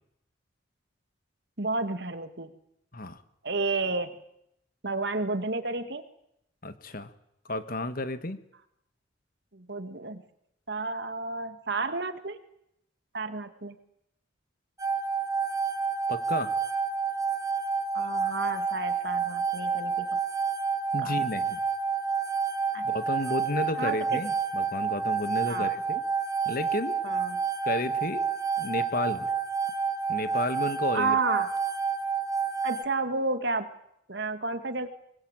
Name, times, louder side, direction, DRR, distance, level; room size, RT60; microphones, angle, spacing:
voice 1, 1.6-2.5 3.4-4.1 4.8-6.0 9.5-10.2 10.7-12.4 13.1-13.8 17.9-20.2 21.0-21.2 22.7-22.9 23.2-23.3 23.7-24.2 25.5-25.7 27.0-27.4 30.9-31.5 32.6-33.7 34.1-34.9, right 3 dB, 60° right, 9 dB, 2.1 m, -31 dB
voice 2, 6.6-7.1 7.5-8.4 16.1-16.5 20.9-21.6 22.8-26.0 26.4-27.0 27.6-28.3 28.6-29.3 30.1-31.2, left 2 dB, 45° left, 11 dB, 1.6 m, -32 dB
sound 1, 14.8-32.8, right 5 dB, 15° right, 1.5 m, -29 dB
23.5 x 20.5 x 9.1 m, 0.79 s
head